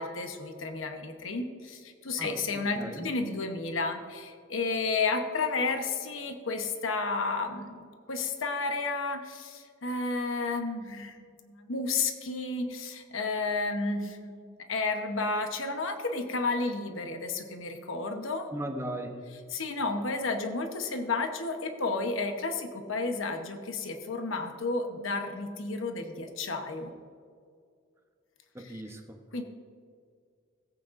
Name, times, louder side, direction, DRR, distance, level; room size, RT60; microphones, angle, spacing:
voice 1, 0.0-18.5 19.5-26.9 28.6-28.7 29.3-29.4, left 3 dB, 75° left, 5 dB, 0.9 m, -32 dB
voice 2, 2.2-3.1 18.5-19.2 28.5-29.2, right 1 dB, 15° right, 4 dB, 0.8 m, -38 dB
16.5 x 8.7 x 2.5 m, 2.2 s
head